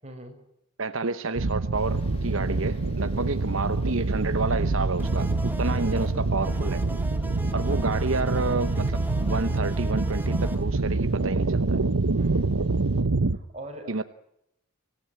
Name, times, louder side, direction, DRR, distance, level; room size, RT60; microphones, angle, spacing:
voice 1, 0.0-0.4 3.1-3.4 12.1-12.5 13.3-14.0, right 1 dB, 30° right, 3 dB, 6.4 m, -42 dB
voice 2, 0.8-6.8 7.5-11.8 13.9-14.0, right 3 dB, 60° right, 10 dB, 1.0 m, -29 dB
sound 1, 1.4-13.4, right 3 dB, 85° right, 0.9 m, -26 dB
sound 2, 1.7-13.0, left 1 dB, 25° left, 2.2 m, -49 dB
sound 3, 5.0-10.6, equal, 10° right, 1.2 m, -38 dB
25.5 x 18.0 x 8.9 m, 0.79 s
head